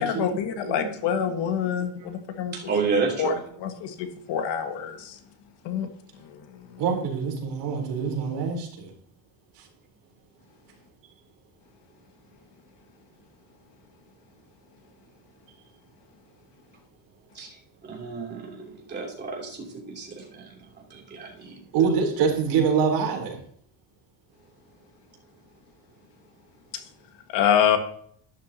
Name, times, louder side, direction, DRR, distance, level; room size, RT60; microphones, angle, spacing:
voice 1, 0.0-2.5 3.2-3.3 3.6-5.2 5.7-5.9 27.3-27.8, left 8 dB, 65° left, 1.8 m, -25 dB
voice 2, 0.6-1.0 1.8-2.1 6.8-8.9 9.6-9.7 21.7-23.4, right 6 dB, 65° right, 4.0 m, -25 dB
voice 3, 2.5-3.4 17.3-17.6 17.8-21.6, right 4 dB, 20° right, 3.2 m, -31 dB
12.0 x 11.5 x 2.9 m
cardioid pair, 170°, 45 cm